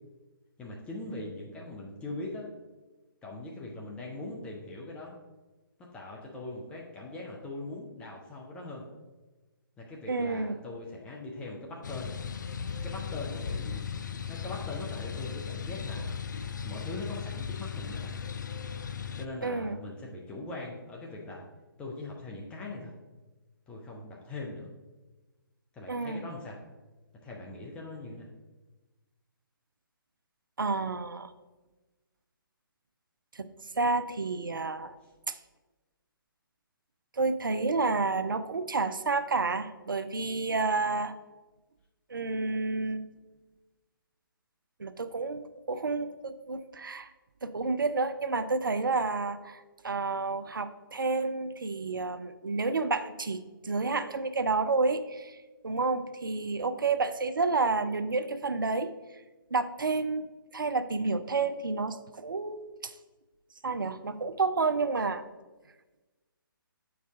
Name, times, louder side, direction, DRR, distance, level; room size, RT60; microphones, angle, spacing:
voice 1, 0.6-2.5 3.2-5.1 5.8-8.9 9.8-12.1 12.8-13.8 14.3-16.1 16.6-18.2 19.2-21.4 21.8-22.9 23.7-24.7 25.7-26.6 27.2-28.3, left 2 dB, 10° left, -2 dB, 0.6 m, -41 dB
voice 2, 10.1-10.5 19.4-19.8 25.9-26.2 30.6-31.3 33.3-33.5 33.8-34.9 35.3-35.4 37.1-41.1 42.1-43.1 44.8-45.4 45.7-47.1 47.4-55.4 55.6-58.9 59.5-60.3 60.5-62.9 63.6-65.2, right 3 dB, 65° right, 11 dB, 0.5 m, -30 dB
sound 1, 11.8-19.3, left 7 dB, 55° left, 0.4 m, -37 dB
8.1 x 4.7 x 3.6 m, 1.2 s
figure-of-eight pair, 135°, 12 cm